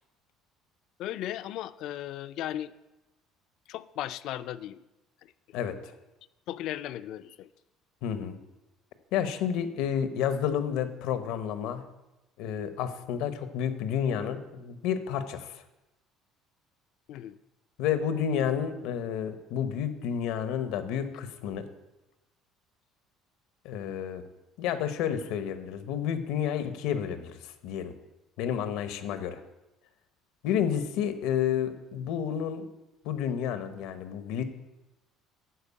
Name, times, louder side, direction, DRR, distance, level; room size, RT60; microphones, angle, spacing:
voice 1, 1.0-2.7 3.7-4.8 5.2-5.3 6.5-7.5 17.1-17.4, left 12 dB, 55° left, 14 dB, 0.4 m, -36 dB
voice 2, 8.0-8.4 9.1-11.8 12.4-15.6 17.8-21.7 23.6-24.2 24.6-27.9 28.4-29.4 30.4-32.6 33.0-34.4, left 8 dB, 75° left, 10 dB, 1.0 m, -30 dB
12.5 x 4.6 x 8.4 m, 0.99 s
cardioid pair, 170°, 0 cm